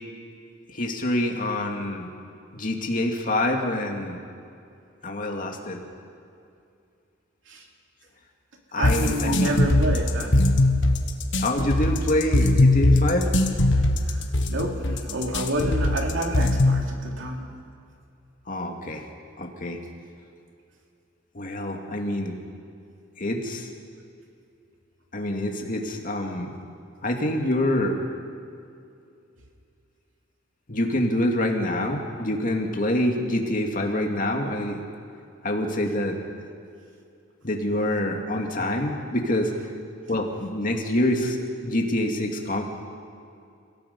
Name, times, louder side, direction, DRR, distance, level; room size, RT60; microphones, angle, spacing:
voice 1, 0.7-2.1 2.5-4.2 5.0-5.8 8.7-9.6 11.4-13.3 18.5-19.1 19.4-19.8 21.3-22.3 23.2-23.7 25.1-26.5 27.0-28.0 30.7-34.8 35.4-36.2 37.4-39.5 40.1-42.6, left 1 dB, 45° left, 2 dB, 2.4 m, -26 dB
voice 2, 8.7-10.4 14.1-17.5, right 1 dB, 70° right, 1 dB, 2.9 m, -29 dB
sound 1, 8.8-16.8, left 2 dB, 65° left, 1.5 m, -20 dB
30.0 x 17.5 x 5.5 m, 2.5 s
head